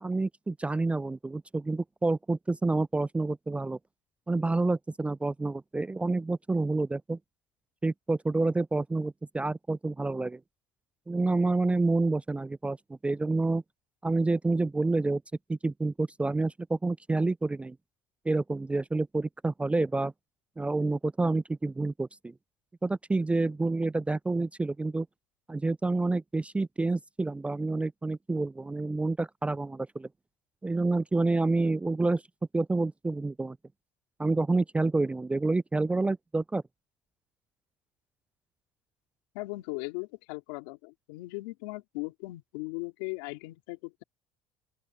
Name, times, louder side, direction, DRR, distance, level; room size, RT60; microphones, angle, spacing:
voice 1, 0.0-3.8 4.3-7.2 7.8-10.4 11.1-13.6 14.0-15.2 15.5-17.8 18.3-20.1 20.6-22.3 22.8-25.1 25.5-30.1 30.6-32.2 32.5-33.6 34.2-36.6, right 3 dB, 10° right, 0.3 m, -28 dB
voice 2, 39.3-44.0, left 24 dB, 90° left, 3.5 m, -38 dB
open air
supercardioid pair, 105°, 11 cm